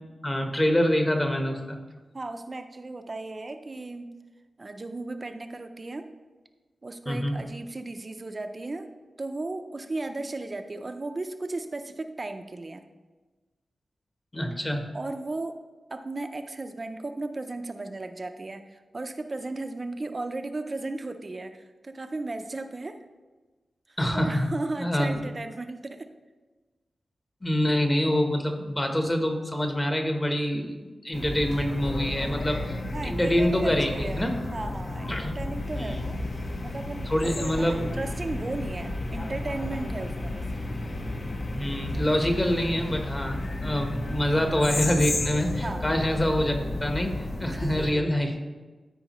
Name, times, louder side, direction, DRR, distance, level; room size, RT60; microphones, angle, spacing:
voice 1, 0.2-1.8 7.1-7.3 14.3-14.8 24.0-24.5 24.8-25.2 27.4-32.8 33.0-34.4 35.1-35.3 35.8-36.0 37.1-37.8 41.5-48.5, equal, 20° left, 4 dB, 1.0 m, -26 dB
voice 2, 2.1-4.1 4.6-6.1 6.8-8.9 9.2-12.8 14.9-15.6 15.9-23.0 23.9-26.1 32.9-40.5 45.6-45.9 47.4-48.1, right 2 dB, 35° right, 7 dB, 0.5 m, -35 dB
sound 1, 31.1-47.9, left 2 dB, 50° left, 0.8 m, -32 dB
13.0 x 4.8 x 3.0 m, 1.3 s
wide cardioid pair, 100°, 0 cm